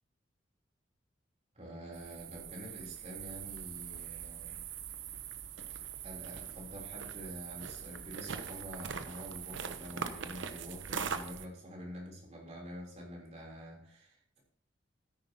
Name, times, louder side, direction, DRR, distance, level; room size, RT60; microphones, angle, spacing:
voice 1, 1.6-4.6 6.0-14.4, equal, 35° right, -2 dB, 3.5 m, -47 dB
sound 1, 1.9-11.5, right 7 dB, 75° right, 0.8 m, -42 dB
13.5 x 9.8 x 2.9 m, 0.62 s
head